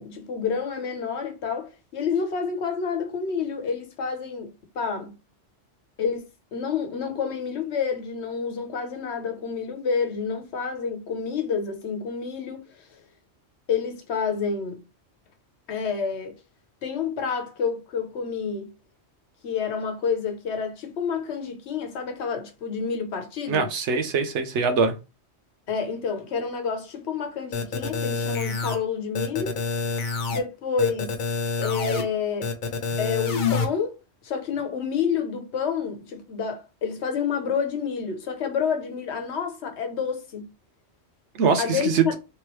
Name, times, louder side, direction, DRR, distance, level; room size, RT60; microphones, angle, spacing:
voice 1, 0.0-5.1 6.0-6.2 6.5-12.8 13.7-14.8 15.7-16.4 16.8-18.7 19.4-23.7 25.7-29.6 30.3-31.2 31.6-32.5 33.0-34.0 34.2-40.5 41.6-42.1, left 6 dB, 75° left, 1.1 m, -29 dB
voice 2, 23.5-24.9 41.3-42.0, right 5 dB, 80° right, 1.0 m, -23 dB
sound 1, 27.5-28.8 29.1-30.4 30.8-32.0 32.4-33.6, left 4 dB, 50° left, 0.7 m, -27 dB
3.3 x 3.0 x 3.0 m
omnidirectional pair, 1.2 m